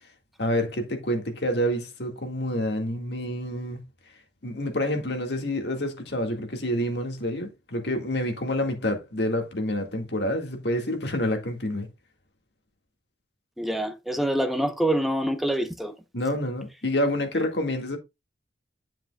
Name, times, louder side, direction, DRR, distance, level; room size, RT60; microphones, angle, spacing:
voice 1, 0.4-3.8 4.4-11.9 16.1-18.0, left 1 dB, 70° left, 2.0 m, -28 dB
voice 2, 13.6-15.9 17.3-17.5, right 1 dB, ahead, 0.9 m, -26 dB
9.7 x 7.4 x 2.4 m
head